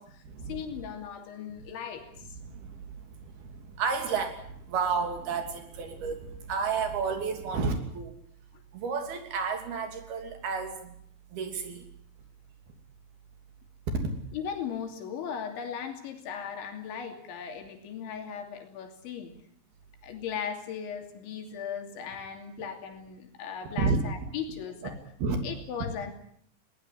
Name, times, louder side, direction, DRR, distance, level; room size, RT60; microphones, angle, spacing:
voice 1, 0.5-2.1 8.5-8.6 14.3-19.3 20.0-25.0 25.4-26.1, left 7 dB, 85° left, 5 dB, 5.2 m, -37 dB
voice 2, 3.5-4.4 4.7-8.1 8.7-10.9 11.3-11.8 23.8-24.0 25.2-25.4, right 5 dB, 60° right, 6 dB, 4.7 m, -31 dB
21.5 x 18.5 x 9.7 m, 0.67 s
omnidirectional pair, 5.2 m